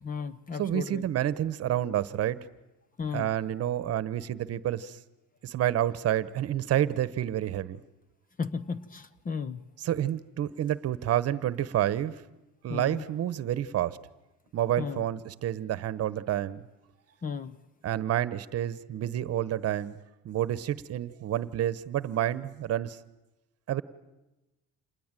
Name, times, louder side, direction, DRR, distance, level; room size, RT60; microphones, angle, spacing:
voice 1, 0.0-1.0 3.0-3.3 8.4-9.6 12.7-13.0 14.8-15.0 17.2-17.6, left 5 dB, 25° left, 16 dB, 0.9 m, -35 dB
voice 2, 0.6-2.4 3.1-5.0 5.4-7.8 9.8-12.2 12.6-14.0 14.5-16.6 17.8-20.0 20.2-23.0 23.7-23.8, right 12 dB, 50° right, 16 dB, 1.1 m, -29 dB
27.5 x 20.5 x 9.1 m, 1.0 s
cardioid pair, 135°, 31 cm